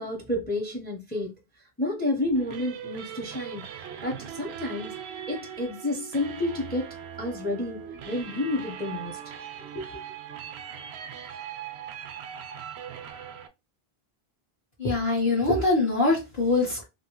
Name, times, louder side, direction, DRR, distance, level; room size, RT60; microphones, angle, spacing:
voice 1, 0.0-1.4 1.8-5.0 5.3-9.2 9.7-10.0, left 1 dB, 10° left, 0.6 m, -30 dB
sound 1, 2.3-13.5, right 8 dB, 85° right, 0.8 m, -40 dB
voice 2, 14.8-16.8, left 3 dB, 55° left, 1.3 m, -23 dB
2.8 x 2.8 x 2.9 m
omnidirectional pair, 1.0 m